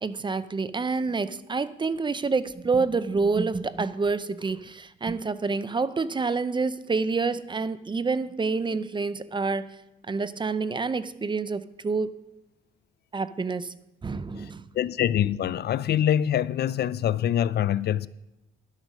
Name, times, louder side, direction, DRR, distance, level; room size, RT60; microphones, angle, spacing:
voice 1, 0.0-9.8 10.1-12.3 13.1-14.7, right 4 dB, 25° right, 0.5 m, -28 dB
voice 2, 14.4-18.1, left 10 dB, 55° left, 0.4 m, -25 dB
11.5 x 6.5 x 6.1 m
cardioid pair, 90°, 20 cm